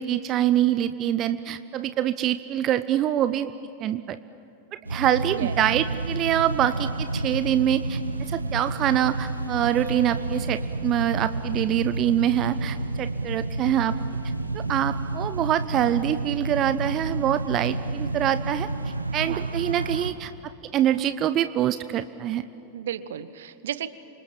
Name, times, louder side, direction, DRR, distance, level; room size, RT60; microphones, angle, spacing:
voice 1, 0.0-3.5 3.8-4.2 4.7-14.0 14.5-18.7 19.1-20.3 20.7-22.5, right 11 dB, 35° right, 12 dB, 0.8 m, -25 dB
sound 1, 4.8-20.1, right 2 dB, 85° right, 1.2 m, -30 dB
voice 2, 22.7-23.9, right 10 dB, 60° right, 15 dB, 1.1 m, -34 dB
29.0 x 26.0 x 7.4 m, 2.7 s
figure-of-eight pair, 90°, 0 cm